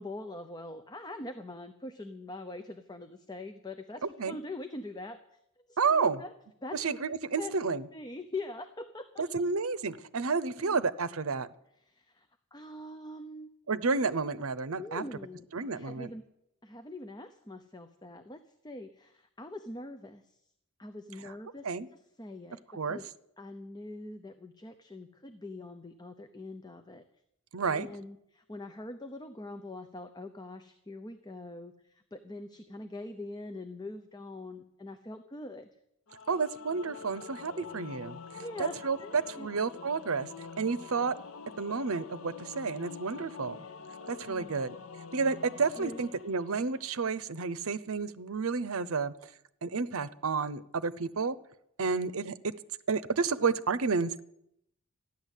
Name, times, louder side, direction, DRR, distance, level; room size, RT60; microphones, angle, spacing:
voice 1, 0.0-5.2 5.7-6.3 6.6-6.8 7.4-7.5 7.9-9.3 10.6-10.8 11.8-13.5 14.8-16.3 16.6-20.4 20.8-21.7 22.2-23.1 23.4-27.0 27.6-35.7 37.6-37.9 38.4-39.5 43.5-43.9 44.2-44.6 45.8-46.0 51.8-52.0, left 2 dB, 20° left, 9 dB, 0.7 m, -43 dB
voice 2, 5.8-6.2 6.7-7.9 9.2-11.5 13.7-15.0 15.5-16.1 21.6-21.9 22.7-23.0 27.5-27.9 36.3-40.3 40.6-41.1 41.6-43.6 44.0-44.7 45.1-49.3 49.6-51.4 51.8-52.5 52.9-54.2, right 4 dB, 70° right, 16 dB, 0.7 m, -31 dB
Singing / Musical instrument, 36.1-47.3, left 5 dB, 65° left, 0.7 m, -46 dB
14.0 x 11.0 x 8.2 m, 0.77 s
head